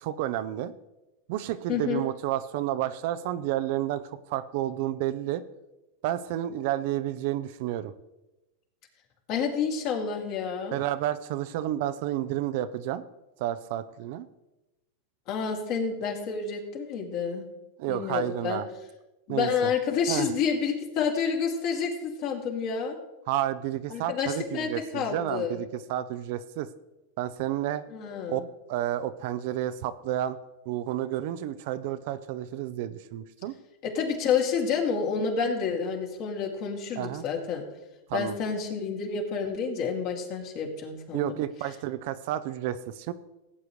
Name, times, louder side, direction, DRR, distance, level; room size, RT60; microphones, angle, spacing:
voice 1, 0.0-0.7 1.3-5.4 6.0-7.9 10.7-13.0 13.4-14.3 17.8-18.7 19.3-19.7 20.1-20.3 23.3-26.7 27.2-27.8 28.3-28.4 28.7-30.4 30.7-33.5 37.0-37.2 38.1-38.3 41.1-43.1, right 12 dB, 60° right, 13 dB, 0.6 m, -30 dB
voice 2, 1.7-2.0 9.3-10.8 15.3-17.4 17.9-18.6 19.3-23.0 23.9-25.7 27.9-28.4 33.8-37.6 38.1-41.4, left 6 dB, 50° left, 1 dB, 2.6 m, -29 dB
16.5 x 8.4 x 3.2 m, 1.0 s
hypercardioid pair, 110°, 0 cm